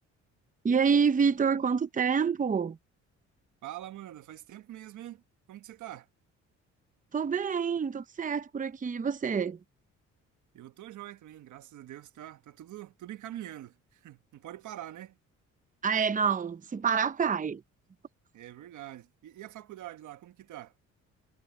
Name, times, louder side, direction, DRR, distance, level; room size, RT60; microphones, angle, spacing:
voice 1, 0.6-2.8 7.1-9.6 15.8-17.6, right 6 dB, 25° right, 0.8 m, -27 dB
voice 2, 3.6-5.2 5.5-6.1 10.5-15.2 18.3-20.7, right 13 dB, 75° right, 1.4 m, -44 dB
cardioid pair, 90°, 30 cm